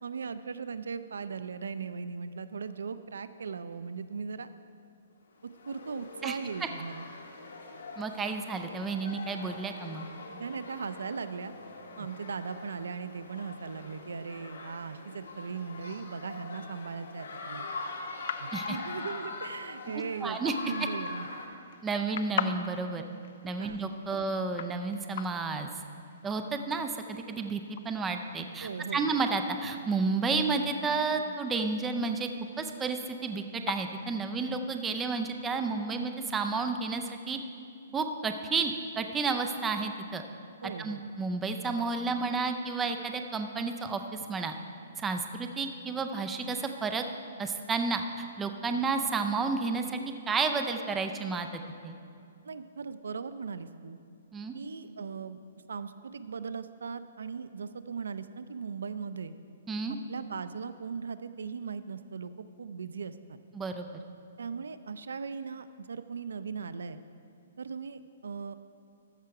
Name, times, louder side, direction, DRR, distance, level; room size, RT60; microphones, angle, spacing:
voice 1, 0.0-4.5 5.4-7.1 10.4-11.5 12.0-17.6 18.4-21.3 23.6-23.8 24.1-24.2 28.6-29.1 40.6-41.0 52.4-54.0 54.5-55.4 55.7-59.3 60.1-63.4 64.4-67.0 67.6-68.6, right 5 dB, 90° right, 13 dB, 0.4 m, -38 dB
sound 1, 5.4-21.5, left 3 dB, 75° left, 1.3 m, -43 dB
voice 2, 6.2-6.7 8.0-10.0 18.5-18.8 20.2-20.5 21.8-23.0 23.4-25.7 26.2-32.3 32.6-37.4 37.9-40.2 40.8-44.5 45.0-47.0 47.4-50.0 50.3-51.9 54.3-54.5 59.7-60.0 63.5-63.9, right 4 dB, 10° right, 6 dB, 0.4 m, -31 dB
sound 2, 15.3-34.9, left 8 dB, 50° left, 0.4 m, -45 dB
14.0 x 5.7 x 4.8 m, 2.4 s
hypercardioid pair, 165°, 0 cm